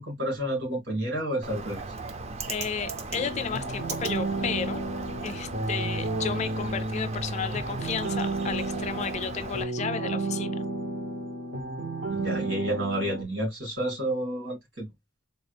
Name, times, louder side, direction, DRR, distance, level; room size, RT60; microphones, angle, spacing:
voice 1, 0.0-1.8 12.1-14.9, right 1 dB, 60° right, 2.6 m, -30 dB
Bird, 1.4-9.6, right 3 dB, 30° right, 0.4 m, -38 dB
voice 2, 2.5-4.8 5.2-10.7, left 6 dB, 35° left, 0.3 m, -33 dB
sound 1, 3.1-13.2, right 2 dB, 80° right, 1.4 m, -32 dB
4.0 x 2.3 x 3.2 m
head